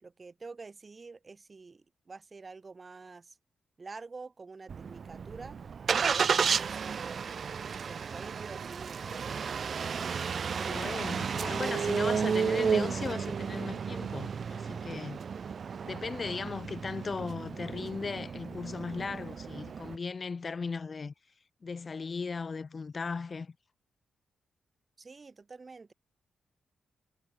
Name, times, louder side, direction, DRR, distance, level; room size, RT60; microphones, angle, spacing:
voice 1, 0.0-3.4 3.8-5.6 6.0-9.3 25.0-25.9, right 4 dB, 40° right, 1.2 m, -48 dB
Engine starting, 4.7-20.0, right 6 dB, 60° right, 0.6 m, -33 dB
voice 2, 10.6-15.2 15.9-21.1 21.6-23.5, left 4 dB, 45° left, 1.0 m, -37 dB
supercardioid pair, 55°, 0 cm